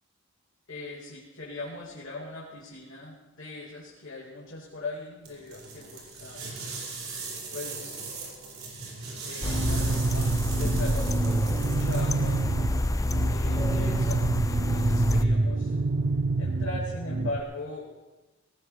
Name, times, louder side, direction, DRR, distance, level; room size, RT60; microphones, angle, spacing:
voice 1, 0.7-6.5 7.5-8.2 9.2-12.4 13.3-15.8 16.4-17.9, left 2 dB, 85° left, -6 dB, 2.8 m, -40 dB
sound 1, 5.2-12.5, right 4 dB, 85° right, 5.0 m, -39 dB
sound 2, 9.4-15.2, left 2 dB, 15° left, 0.4 m, -29 dB
sound 3, 9.4-17.4, right 2 dB, 45° right, 0.6 m, -27 dB
19.0 x 18.0 x 3.4 m, 1.2 s
head